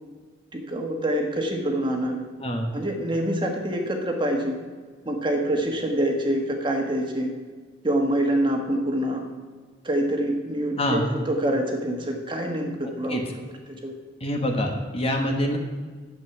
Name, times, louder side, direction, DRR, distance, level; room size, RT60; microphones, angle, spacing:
voice 1, 0.5-2.2 2.7-4.6 5.0-7.3 7.8-9.3 9.8-11.0 11.3-13.2 13.8-13.9, right 1 dB, 25° right, 2 dB, 1.5 m, -25 dB
voice 2, 2.4-2.7 10.8-11.1 13.1-13.2 14.2-15.6, equal, 30° left, 2 dB, 1.4 m, -25 dB
11.0 x 8.1 x 5.9 m, 1.5 s
head